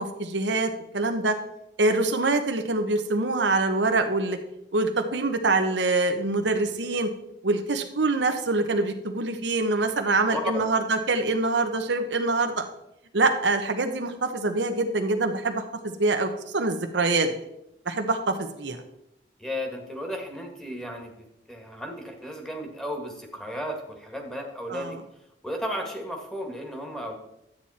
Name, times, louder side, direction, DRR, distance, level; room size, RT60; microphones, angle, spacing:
voice 1, 0.0-1.4 1.8-4.4 4.7-7.1 7.4-12.6 13.1-17.3 17.9-18.8 24.7-25.0, right 3 dB, 80° right, 5 dB, 1.0 m, -25 dB
voice 2, 10.3-10.6 19.4-25.0 25.4-27.1, equal, 5° left, 2 dB, 1.8 m, -34 dB
11.5 x 9.0 x 4.2 m, 0.82 s
head